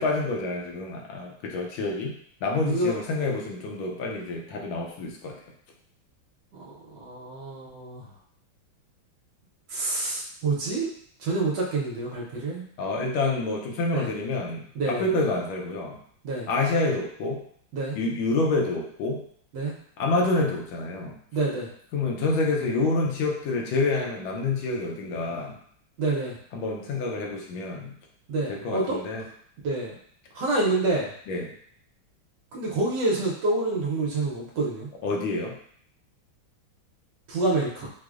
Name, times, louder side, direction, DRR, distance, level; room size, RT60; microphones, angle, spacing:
voice 1, 0.0-2.1 2.4-5.3 12.8-16.0 16.5-17.4 17.9-19.2 20.0-21.2 21.9-25.6 26.5-27.9 28.5-29.3 31.3-31.5 35.0-35.5, left 3 dB, 80° left, 0 dB, 1.4 m, -27 dB
voice 2, 2.6-3.0 6.5-8.0 9.7-10.9 11.2-12.6 13.9-14.1 14.7-15.0 16.2-16.5 17.7-18.0 19.5-19.7 21.3-21.7 26.0-26.4 28.3-29.0 29.6-30.0 30.3-31.1 32.5-34.9 37.3-37.9, right 2 dB, 70° right, -3 dB, 1.2 m, -27 dB
4.9 x 2.0 x 2.4 m, 0.63 s
omnidirectional pair, 2.3 m